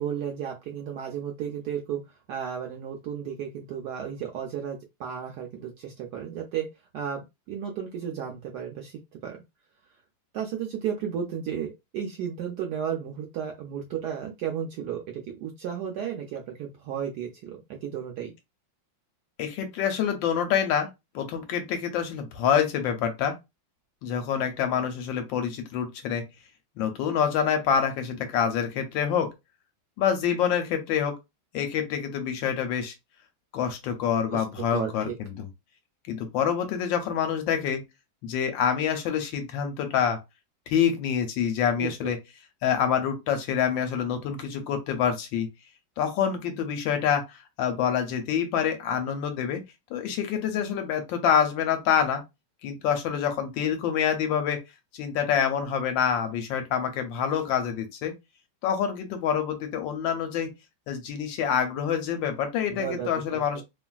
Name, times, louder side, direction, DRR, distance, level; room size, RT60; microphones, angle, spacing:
voice 1, 0.0-2.0 2.3-6.7 6.9-9.4 10.3-11.7 11.9-18.3 34.3-35.1 41.8-42.1 62.7-63.6, right 8 dB, 75° right, 0.9 m, -33 dB
voice 2, 19.4-20.9 21.1-23.3 24.0-26.2 26.8-29.3 30.0-31.2 31.5-32.9 33.5-35.5 36.1-37.8 38.2-40.2 40.7-42.2 42.6-45.5 46.0-49.6 49.9-52.2 52.6-54.6 54.9-58.1 58.6-60.5 60.9-63.6, left 8 dB, 75° left, 1.3 m, -26 dB
3.1 x 2.4 x 2.3 m
omnidirectional pair, 2.2 m